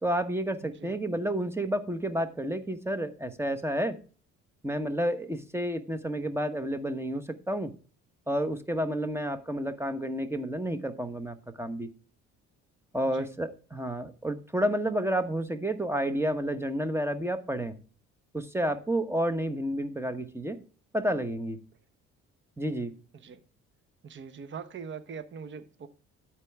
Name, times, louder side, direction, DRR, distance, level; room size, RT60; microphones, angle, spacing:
voice 1, 0.0-4.0 4.6-7.7 8.3-11.9 12.9-17.7 18.3-20.6 20.9-21.6 22.6-22.9, right 1 dB, 10° right, 10 dB, 1.1 m, -30 dB
voice 2, 0.6-1.0 13.1-13.3 23.1-23.4 24.0-25.9, right 6 dB, 40° right, 11 dB, 0.9 m, -42 dB
12.5 x 4.5 x 3.5 m, 0.38 s
supercardioid pair, 80°, 29 cm